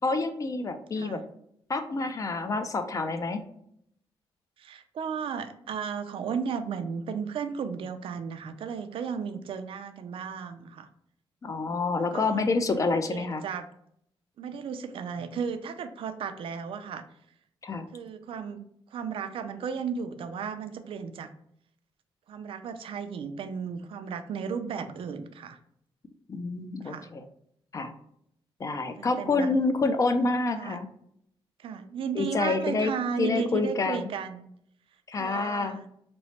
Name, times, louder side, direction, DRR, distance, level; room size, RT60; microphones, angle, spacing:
voice 1, 0.0-1.2 1.7-3.4 11.4-13.4 17.6-17.9 26.3-27.2 27.7-27.9 28.6-30.9 32.2-32.9 33.2-34.1 35.1-35.8, left 3 dB, 35° left, 9 dB, 0.3 m, -28 dB
voice 2, 4.6-10.9 12.1-12.4 13.1-13.7 14.4-17.0 17.9-18.6 18.9-21.3 22.3-25.6 26.8-27.1 29.0-29.5 30.6-30.8 31.6-34.5 35.1-35.9, right 6 dB, 65° right, 9 dB, 0.4 m, -34 dB
3.0 x 2.0 x 4.1 m, 0.71 s
cardioid pair, 100°, 10 cm